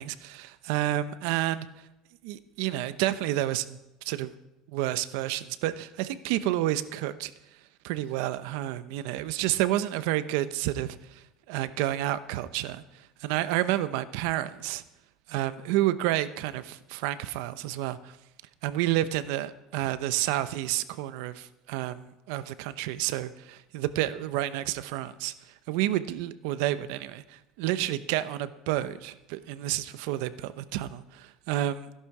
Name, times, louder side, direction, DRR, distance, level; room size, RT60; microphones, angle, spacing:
voice 1, 0.0-1.7 2.2-3.8 4.0-4.3 4.7-7.3 7.8-14.8 15.3-18.2 18.6-25.3 25.7-31.9, right 14 dB, 80° right, 14 dB, 0.8 m, -30 dB
16.0 x 11.5 x 4.9 m, 0.95 s
cardioid pair, 140°, 0 cm